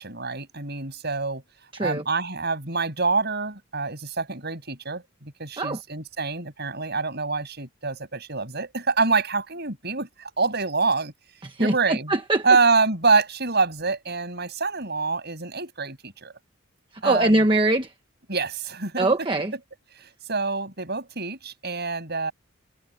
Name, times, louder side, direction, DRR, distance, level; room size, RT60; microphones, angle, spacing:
voice 1, 0.0-1.4 1.8-11.1 11.6-12.1 12.4-16.3 17.0-17.4 18.3-19.1 20.0-22.3, right 4 dB, 50° right, 7.5 m, -26 dB
voice 2, 1.7-2.0 5.6-5.8 11.4-12.5 16.9-17.9 19.0-19.5, right 2 dB, 25° right, 1.2 m, -22 dB
head